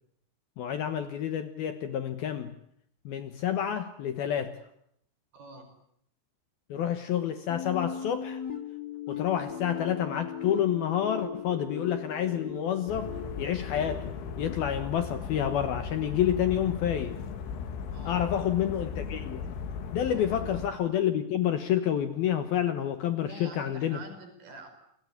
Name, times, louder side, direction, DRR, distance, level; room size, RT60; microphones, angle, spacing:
voice 1, 0.6-2.5 3.1-4.6 6.7-8.4 9.1-17.2 18.1-19.5 19.9-24.0, left 10 dB, 65° left, 9 dB, 2.7 m, -29 dB
voice 2, 5.3-5.8 17.9-18.3 20.1-20.6 23.3-24.7, right 2 dB, 55° right, 6 dB, 6.8 m, -46 dB
sound 1, 7.5-14.5, left 7 dB, 30° left, 2.4 m, -38 dB
sound 2, 12.9-20.7, left 6 dB, 90° left, 4.9 m, -37 dB
29.5 x 21.0 x 9.6 m, 0.73 s
omnidirectional pair, 5.5 m